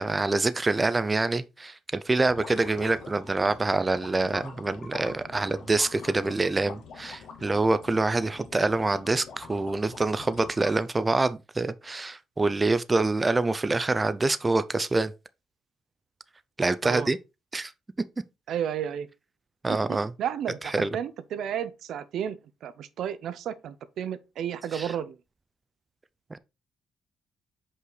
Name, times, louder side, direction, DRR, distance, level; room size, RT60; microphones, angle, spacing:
voice 1, 0.0-15.1 16.6-17.2 17.5-17.7 19.6-20.1 20.6-20.9 24.7-24.9 26.3-26.4, right 3 dB, 20° right, 0.5 m, -26 dB
sound 1, 2.2-11.1, left 5 dB, 75° left, 1.5 m, -45 dB
voice 2, 18.5-19.1 19.7-25.2, right 9 dB, 75° right, 0.6 m, -32 dB
5.5 x 4.9 x 3.9 m
cardioid pair, 90°, 0 cm